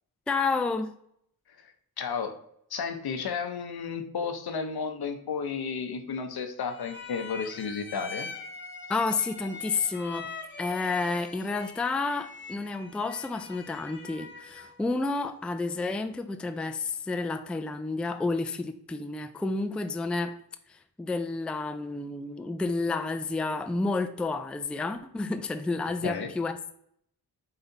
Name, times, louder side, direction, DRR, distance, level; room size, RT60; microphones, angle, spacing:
voice 1, 0.3-0.9 8.9-10.3 10.6-20.3 20.7-26.7, left 3 dB, 5° left, 9 dB, 0.3 m, -30 dB
voice 2, 2.0-2.3 2.7-8.3 26.0-26.3, left 5 dB, 75° left, 7 dB, 0.8 m, -32 dB
sound 1, 6.7-14.8, left 3 dB, 30° left, 0.9 m, -43 dB
4.0 x 3.3 x 3.9 m, 0.70 s
cardioid pair, 70°, 38 cm